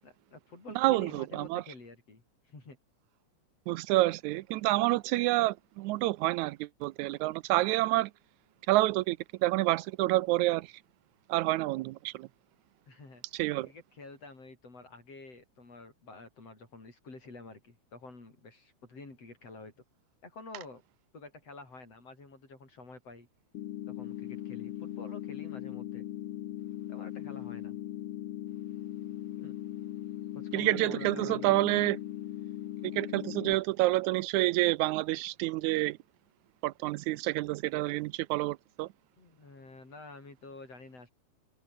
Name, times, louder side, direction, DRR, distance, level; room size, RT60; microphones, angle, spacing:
voice 1, 0.0-2.8 12.9-13.2 13.7-19.7 20.2-20.8 21.1-23.3 23.9-26.0 26.9-27.8 29.3-29.5 30.3-31.5 33.5-33.6 39.2-41.1, left 3 dB, 55° left, 8.2 m, -49 dB
voice 2, 0.8-1.6 3.7-8.1 8.7-10.7 11.3-12.3 13.3-13.7 30.5-32.0 32.9-36.0 36.6-38.9, right 18 dB, 80° right, 2.0 m, -28 dB
sound 1, 23.5-33.5, left 13 dB, 90° left, 1.1 m, -39 dB
omnidirectional pair, 3.4 m